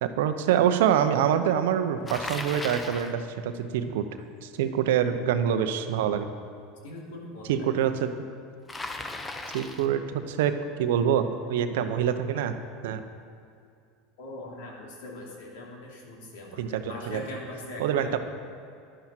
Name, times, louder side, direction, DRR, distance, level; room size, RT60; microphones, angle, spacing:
voice 1, 0.0-4.0 4.4-6.3 7.4-8.1 9.5-12.5 12.8-13.0 16.6-17.2 17.8-18.2, right 9 dB, 75° right, 9 dB, 0.8 m, -25 dB
Bicycle, 2.1-3.2 8.7-10.0, left 2 dB, 15° left, 0.9 m, -36 dB
voice 2, 6.8-7.7 14.2-18.2, left 1 dB, 70° left, -1 dB, 2.8 m, -41 dB
11.5 x 11.5 x 4.5 m, 2.5 s
hypercardioid pair, 95°, 0 cm